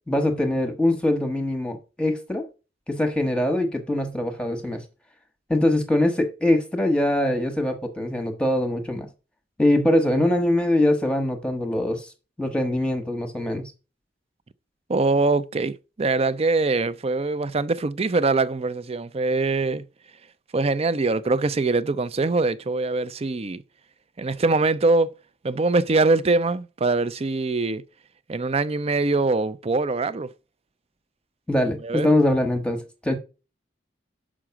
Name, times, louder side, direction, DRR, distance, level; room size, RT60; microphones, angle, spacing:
voice 1, 0.1-2.5 2.9-4.8 5.5-9.1 9.6-12.1 12.4-13.7 31.5-33.2, left 1 dB, 5° left, 1.1 m, -23 dB
voice 2, 14.9-19.8 20.5-23.6 24.2-25.1 25.4-27.8 28.3-30.3 31.8-32.1, right 3 dB, 35° right, 0.5 m, -23 dB
6.3 x 4.9 x 5.7 m
head